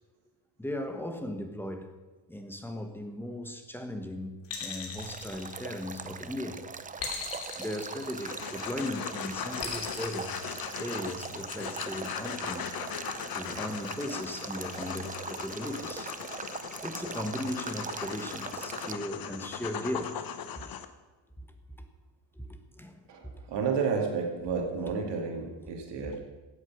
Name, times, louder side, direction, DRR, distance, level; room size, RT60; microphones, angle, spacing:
voice 1, 0.6-1.9 2.3-6.6 7.1-7.3 7.6-10.4 10.7-12.7 13.3-16.1 16.8-20.2 20.6-20.7 22.3-23.3, left 1 dB, 5° left, 1.2 m, -37 dB
sound 1, 4.5-6.1 7.0-8.7 9.6-11.2, left 6 dB, 65° left, 3.0 m, -39 dB
Male speech man speaking / Stream / Trickle dribble, 5.0-18.9, right 5 dB, 20° right, 0.5 m, -41 dB
sound 2, 8.0-20.8, left 8 dB, 50° left, 1.0 m, -39 dB
voice 2, 23.1-26.2, right 5 dB, 65° right, 2.6 m, -31 dB
16.0 x 8.4 x 6.2 m
cardioid pair, 150°, 45 cm